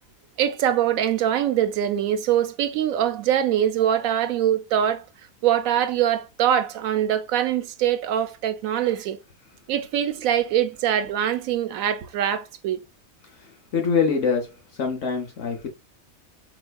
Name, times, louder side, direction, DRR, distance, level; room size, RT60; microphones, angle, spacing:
voice 1, 0.4-5.0 5.4-9.2 9.7-12.8, right 10 dB, 75° right, 1.0 m, -23 dB
voice 2, 13.4-15.7, left 5 dB, 60° left, 1.1 m, -25 dB
4.3 x 3.0 x 2.2 m
omnidirectional pair, 1.5 m